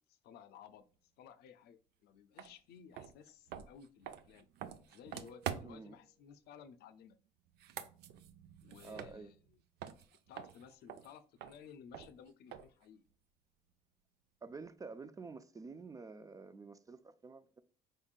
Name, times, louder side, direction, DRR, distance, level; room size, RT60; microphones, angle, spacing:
voice 1, 0.1-0.9 1.2-4.5 4.9-7.2 8.6-9.6 10.3-13.0, left 8 dB, 75° left, 0.5 m, -57 dB
sound 1, 2.4-2.5 2.9-5.9 7.5-9.5 9.8-12.9, right 9 dB, 75° right, 0.5 m, -46 dB
sound 2, 5.1-6.3, right 3 dB, 10° left, 1.4 m, -62 dB
voice 2, 5.6-6.0 8.8-9.3 14.4-17.6, right 4 dB, 20° right, 0.3 m, -49 dB
5.3 x 3.7 x 2.3 m
cardioid pair, 110°, 17 cm